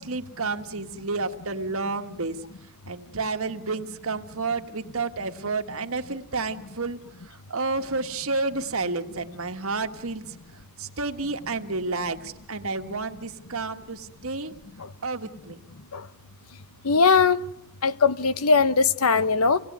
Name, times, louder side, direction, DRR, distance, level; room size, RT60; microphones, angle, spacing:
voice 1, 0.0-2.4 2.9-10.4 10.8-14.5 15.0-15.6, right 3 dB, 70° right, 1.6 m, -30 dB
voice 2, 16.8-17.4 17.8-19.6, left 5 dB, 80° left, 1.0 m, -20 dB
26.5 x 18.5 x 9.4 m
head